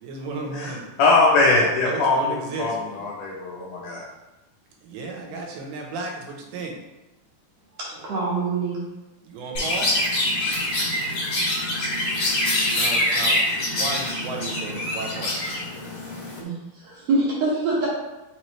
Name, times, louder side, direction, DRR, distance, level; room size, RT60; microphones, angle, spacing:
voice 1, 0.0-0.8 1.9-2.7 4.9-6.7 9.3-9.9 12.7-13.4 13.7-15.3, right 3 dB, 85° right, 0 dB, 2.7 m, -33 dB
voice 2, 0.5-4.0, left 3 dB, 85° left, -4 dB, 1.8 m, -21 dB
voice 3, 7.9-8.9 16.4-17.9, right 3 dB, 65° right, -7 dB, 1.8 m, -25 dB
Chirp tweet, 9.5-16.4, left 1 dB, 55° left, 1.7 m, -25 dB
5.7 x 3.1 x 2.9 m, 1.0 s
omnidirectional pair, 4.4 m